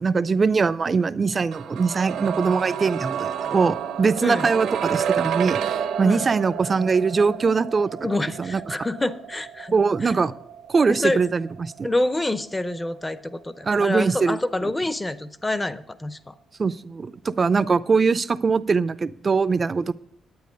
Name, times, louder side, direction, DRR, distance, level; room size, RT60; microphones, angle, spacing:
voice 1, 0.0-7.9 8.4-8.6 9.7-10.3 10.7-11.9 13.6-14.7 16.6-19.9, right 4 dB, 35° right, 15 dB, 0.5 m, -22 dB
sound 1, 1.5-13.3 13.6-13.7, right 8 dB, 85° right, 1.0 m, -30 dB
voice 2, 8.0-9.7 10.0-10.1 10.9-11.2 11.8-16.3, left 2 dB, 15° left, 14 dB, 0.7 m, -27 dB
10.5 x 9.0 x 5.2 m, 0.68 s
cardioid pair, 90°, 0 cm